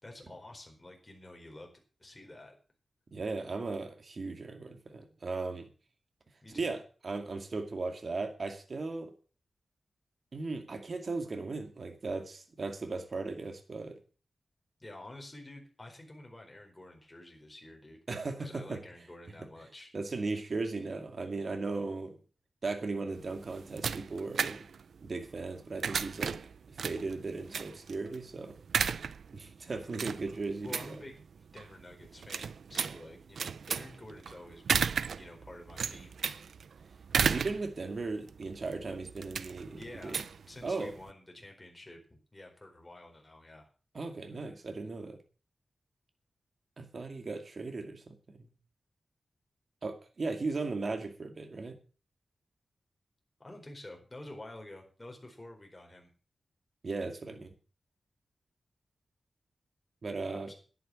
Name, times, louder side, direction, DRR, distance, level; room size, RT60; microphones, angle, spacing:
voice 1, 0.0-1.7 2.0-2.5 6.4-6.7 14.8-18.0 18.4-19.9 30.6-31.2 31.5-36.1 39.7-43.7 53.4-56.1 60.3-60.5, left 1 dB, 20° left, 2 dB, 4.4 m, -49 dB
voice 2, 3.1-5.6 6.5-9.1 10.3-14.0 18.1-18.8 19.9-22.2 22.6-24.6 25.0-26.4 26.7-28.5 29.3-30.7 37.1-40.2 40.6-40.9 43.9-45.2 46.8-48.0 48.4-48.5 49.8-51.8 56.8-57.5 60.0-60.5, right 3 dB, 55° right, 5 dB, 2.3 m, -37 dB
sound 1, 23.1-41.1, right 6 dB, 85° right, 0.6 m, -35 dB
11.0 x 9.4 x 7.7 m, 0.37 s
wide cardioid pair, 95°, 0 cm